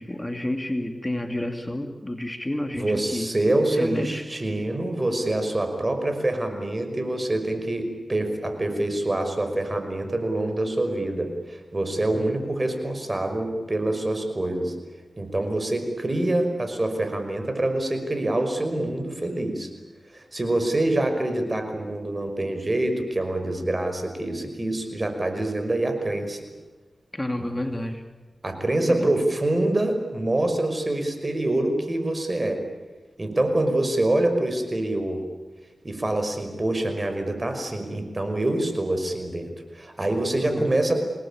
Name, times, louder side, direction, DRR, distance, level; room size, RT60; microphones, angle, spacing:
voice 1, 0.0-3.3 3.7-4.2 12.1-12.3 27.1-28.0 28.9-29.2 40.4-40.7, left 1 dB, 20° left, 5 dB, 2.6 m, -30 dB
voice 2, 2.7-14.7 15.2-19.7 20.1-26.4 28.4-32.6 33.2-35.2 35.8-40.9, right 1 dB, 35° right, 6 dB, 5.6 m, -25 dB
27.5 x 20.0 x 8.8 m, 1.3 s
cardioid pair, 55°, 0 cm